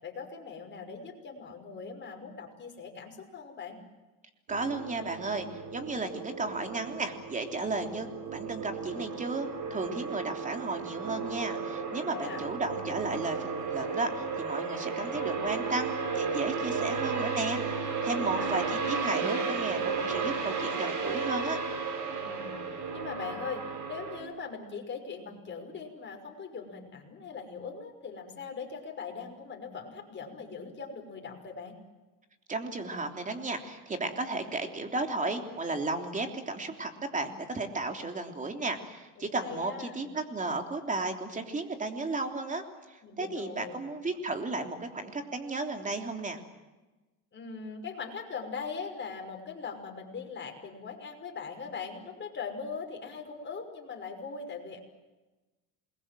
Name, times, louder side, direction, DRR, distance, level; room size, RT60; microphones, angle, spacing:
voice 1, 0.0-3.8 12.0-12.5 18.0-18.5 22.1-31.8 39.2-40.0 43.0-43.8 47.3-54.8, left 5 dB, 30° left, 3 dB, 5.8 m, -41 dB
voice 2, 4.5-5.5 5.7-21.6 32.5-46.4, right 3 dB, 20° right, 5 dB, 3.3 m, -34 dB
sound 1, 4.5-24.2, right 5 dB, 50° right, 6.4 m, -34 dB
28.0 x 21.5 x 7.7 m, 1.1 s
cardioid pair, 125°, 38 cm